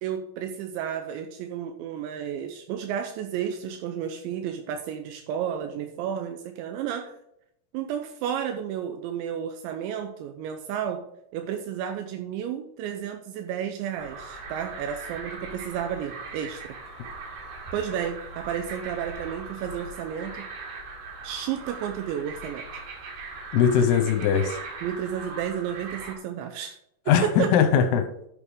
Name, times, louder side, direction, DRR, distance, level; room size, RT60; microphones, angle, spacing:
voice 1, 0.0-7.1 7.7-11.0 11.3-16.7 17.7-20.5 21.2-22.7 24.8-26.8 27.1-27.5, right 9 dB, 85° right, 6 dB, 2.9 m, -32 dB
sound 1, 14.0-26.1, right 3 dB, 70° right, 4.3 m, -40 dB
voice 2, 23.5-24.6 27.1-28.0, left 8 dB, 75° left, 5 dB, 2.6 m, -20 dB
12.0 x 6.6 x 3.6 m, 0.77 s
omnidirectional pair, 5.4 m